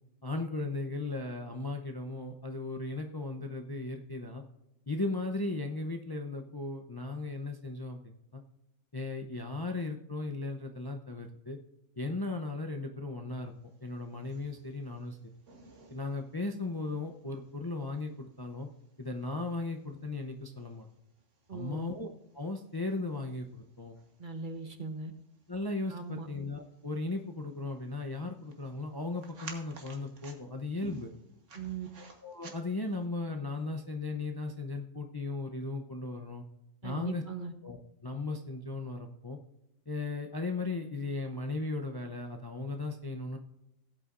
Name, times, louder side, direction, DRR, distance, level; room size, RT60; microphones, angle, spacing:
voice 1, 0.2-4.4 4.9-8.4 8.9-11.6 12.0-13.5 13.8-15.2 15.9-18.7 19.0-20.9 21.5-22.1 22.3-23.9 25.5-31.1 32.2-36.4 36.8-37.2 37.6-39.4 39.9-43.4, left 2 dB, 25° left, 3 dB, 0.6 m, -36 dB
sound 1, 13.6-33.0, right 4 dB, 70° right, 1.7 m, -56 dB
voice 2, 21.5-21.9 24.2-25.1 25.9-26.3 31.5-31.9 36.8-37.5, right 4 dB, 45° right, 7 dB, 1.0 m, -39 dB
17.0 x 8.4 x 2.5 m, 0.87 s
omnidirectional pair, 1.3 m